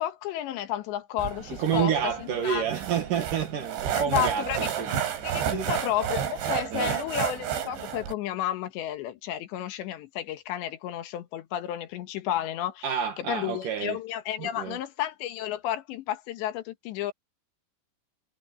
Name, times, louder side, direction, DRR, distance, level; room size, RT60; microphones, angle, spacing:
voice 1, 0.0-2.7 3.9-5.0 5.2-12.9 13.2-17.1, left 12 dB, 80° left, 3.6 m, -32 dB
sound 1, 1.2-8.1, right 9 dB, 90° right, 5.8 m, -31 dB
voice 2, 1.6-4.9 5.5-5.8 6.7-6.9 12.8-14.0 14.4-14.8, right 8 dB, 60° right, 2.6 m, -29 dB
omnidirectional pair, 5.1 m